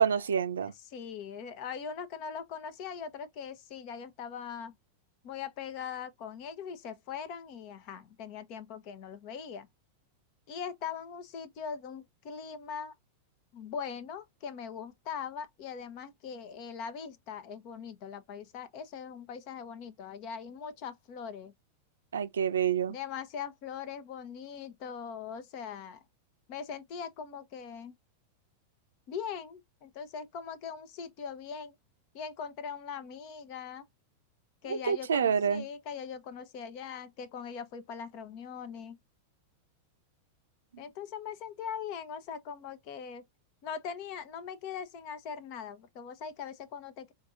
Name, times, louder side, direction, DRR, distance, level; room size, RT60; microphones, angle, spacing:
voice 1, 0.0-0.7 22.1-23.0 34.7-35.7 40.7-40.8, right 7 dB, 65° right, 0.5 m, -27 dB
voice 2, 0.6-4.8 5.2-9.7 10.5-12.9 13.5-21.5 22.9-26.0 26.5-27.9 29.1-31.7 32.1-33.9 34.6-39.0 40.8-43.2 43.6-47.1, left 7 dB, 45° left, 0.8 m, -41 dB
5.5 x 2.6 x 2.5 m
figure-of-eight pair, 90°, 0 cm